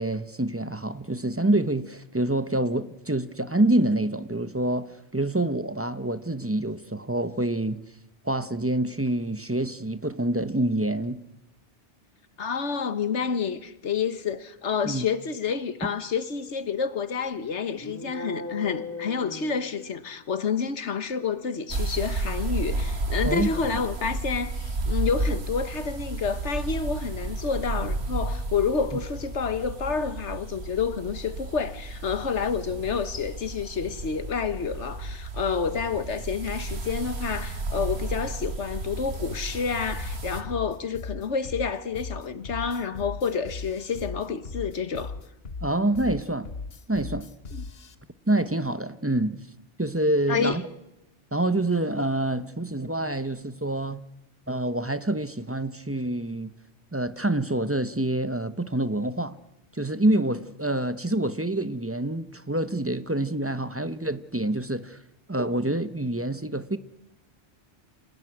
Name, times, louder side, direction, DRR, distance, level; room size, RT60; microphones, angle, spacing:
voice 1, 0.0-7.8 8.2-11.2 14.8-15.0 23.2-23.5 28.9-29.0 45.6-46.5 46.9-47.3 48.3-49.4 49.8-50.6 51.3-54.0 54.5-56.5 56.9-59.4 59.7-65.0 65.3-66.8, right 1 dB, 15° right, 0.7 m, -26 dB
voice 2, 12.4-45.2 47.6-47.7 50.3-50.6, left 6 dB, 80° left, 1.6 m, -29 dB
sound 1, 17.7-20.3, left 3 dB, 15° left, 2.5 m, -38 dB
sound 2, 21.7-40.4, right 2 dB, 65° right, 2.0 m, -32 dB
sound 3, 40.0-48.0, left 4 dB, 60° left, 1.5 m, -37 dB
26.5 x 16.0 x 9.9 m
omnidirectional pair, 1.2 m